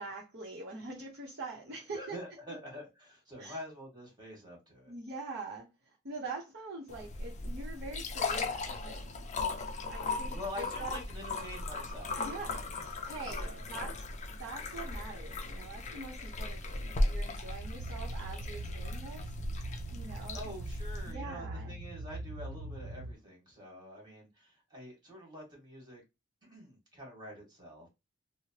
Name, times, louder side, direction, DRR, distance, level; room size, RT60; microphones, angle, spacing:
voice 1, 0.0-2.2 3.4-3.6 4.9-9.3 9.8-10.9 12.2-19.3 19.9-20.4 21.1-21.8, right 3 dB, 50° right, 0.7 m, -44 dB
voice 2, 1.9-4.9 10.3-13.9 20.3-26.0 26.4-27.9, equal, 20° right, 1.6 m, -46 dB
sound 1, 6.9-21.1, left 2 dB, 35° left, 0.4 m, -37 dB
sound 2, 17.5-23.1, right 2 dB, 80° right, 0.3 m, -42 dB
3.1 x 2.0 x 2.8 m
head